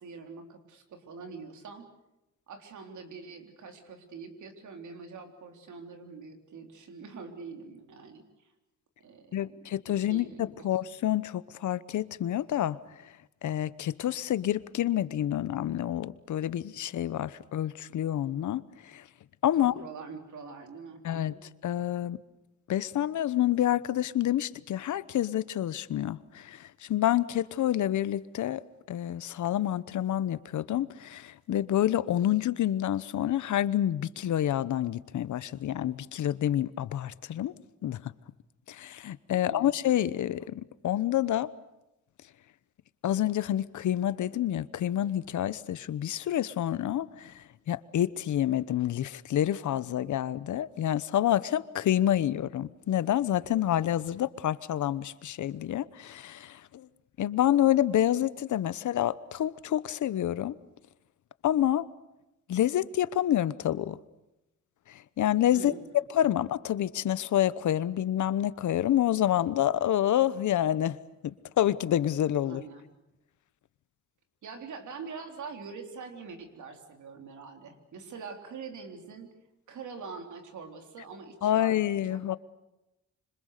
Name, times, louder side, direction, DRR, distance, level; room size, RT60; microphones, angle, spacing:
voice 1, 0.0-1.9 2.5-8.5 9.0-9.6 10.0-10.4 19.5-21.4 39.3-39.7 65.5-66.0 72.4-72.8 74.4-79.3 79.7-82.2, right 5 dB, 85° right, 5 dB, 3.7 m, -44 dB
voice 2, 9.3-12.8 13.4-19.0 19.4-19.7 21.0-21.3 21.6-22.2 22.7-28.6 28.9-37.5 37.8-38.1 38.7-41.5 43.0-56.9 57.2-60.6 61.4-61.9 62.5-64.0 64.9-65.7 66.1-71.0 71.2-72.6 81.4-82.4, left 12 dB, 85° left, 17 dB, 1.0 m, -28 dB
27.0 x 26.0 x 6.7 m, 0.92 s
cardioid pair, 85°, 29 cm